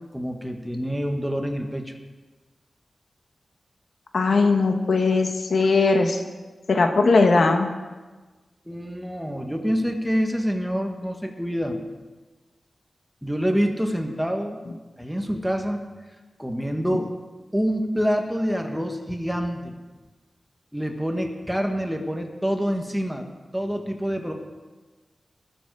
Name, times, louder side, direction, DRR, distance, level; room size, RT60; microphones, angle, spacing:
voice 1, 0.1-1.9 8.7-11.8 13.2-14.6 15.0-15.8 16.4-17.1 17.5-19.8 20.7-23.2 23.5-24.3, equal, 5° right, 3 dB, 1.4 m, -26 dB
voice 2, 4.1-6.2 6.7-7.7 16.9-17.0, left 3 dB, 70° left, 5 dB, 1.2 m, -19 dB
20.5 x 7.2 x 4.8 m, 1.3 s
wide cardioid pair, 100°, 0 cm